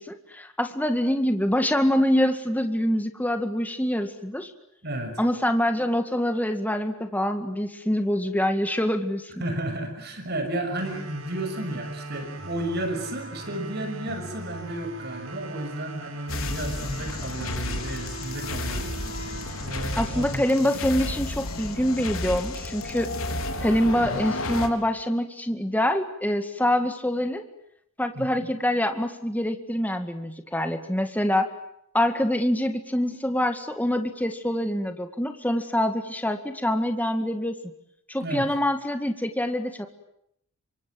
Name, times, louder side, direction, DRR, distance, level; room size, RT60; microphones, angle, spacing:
voice 1, 0.0-4.5 5.2-9.3 20.0-23.1 23.6-27.5 28.0-31.5 31.9-37.6 38.1-39.9, left 1 dB, 10° left, 7 dB, 2.0 m, -25 dB
voice 2, 4.8-5.2 9.4-19.1 19.6-20.5 24.0-24.2 28.1-28.5 38.2-38.5, right 1 dB, 50° right, 7 dB, 6.3 m, -33 dB
sound 1, 10.8-21.8, right 2 dB, 85° right, 5.2 m, -39 dB
sound 2, 16.3-24.7, left 2 dB, 80° left, 3.7 m, -32 dB
29.0 x 25.5 x 7.8 m, 0.75 s
head